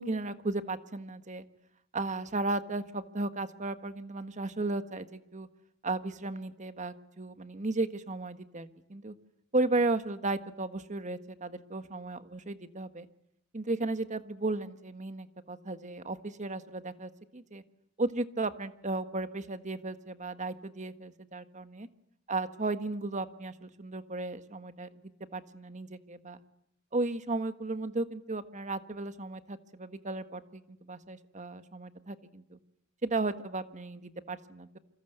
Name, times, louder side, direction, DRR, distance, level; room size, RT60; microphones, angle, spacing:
voice 1, 0.0-1.4 1.9-5.5 5.8-9.1 9.5-13.1 13.5-17.6 18.0-21.9 22.3-24.9 25.3-26.4 26.9-32.6 33.0-34.8, right 2 dB, 35° right, 10 dB, 1.6 m, -35 dB
28.5 x 26.0 x 8.0 m, 0.77 s
head